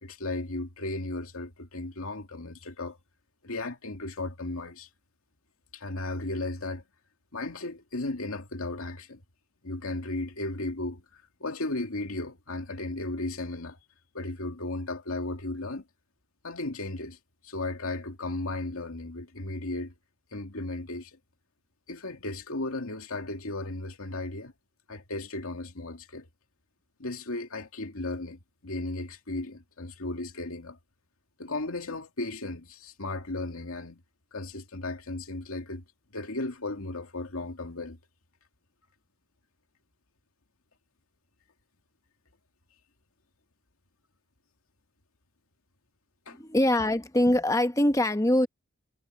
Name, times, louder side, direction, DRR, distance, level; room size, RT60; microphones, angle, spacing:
voice 1, 0.0-3.0 3.4-4.9 5.7-6.8 7.3-9.2 9.6-13.8 14.1-15.8 16.4-17.2 17.4-19.9 20.3-21.2 21.9-24.5 24.9-26.3 27.0-30.8 31.4-34.0 34.3-35.8 36.1-38.0 46.3-46.4, left 2 dB, 80° left, 2.4 m, -35 dB
voice 2, 46.3-48.5, left 1 dB, 15° left, 1.0 m, -23 dB
head